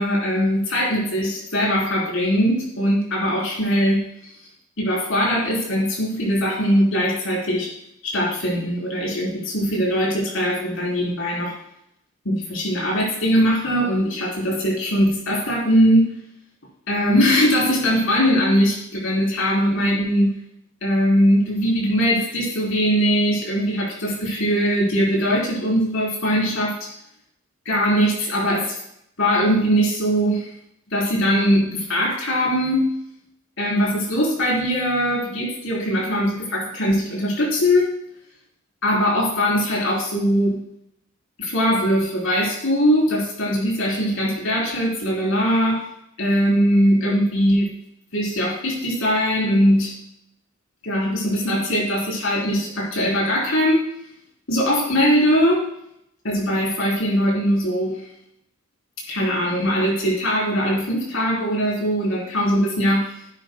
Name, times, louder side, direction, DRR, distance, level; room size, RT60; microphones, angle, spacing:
voice 1, 0.0-4.1 4.8-7.7 8.0-11.5 12.2-16.1 16.9-20.4 20.8-26.9 27.6-28.8 29.2-30.5 30.9-32.9 33.6-37.9 38.8-40.6 41.4-45.8 46.2-47.7 48.1-49.9 50.8-53.8 54.5-55.6 56.2-58.0 59.1-63.1, equal, 70° left, -4 dB, 4.0 m, -21 dB
10.5 x 10.0 x 2.3 m, 0.76 s
head